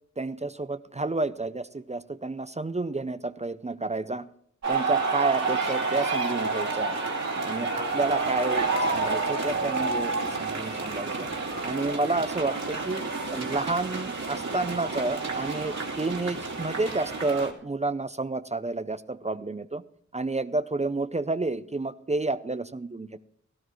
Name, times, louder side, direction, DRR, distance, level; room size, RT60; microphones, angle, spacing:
voice 1, 0.2-4.3 4.7-7.0 7.4-11.3 11.6-19.8 20.1-23.2, right 3 dB, 25° right, 13 dB, 0.5 m, -30 dB
sound 1, 4.6-17.5, right 3 dB, 60° right, 2.6 m, -29 dB
17.0 x 15.0 x 3.1 m, 0.63 s
wide cardioid pair, 90°, 30 cm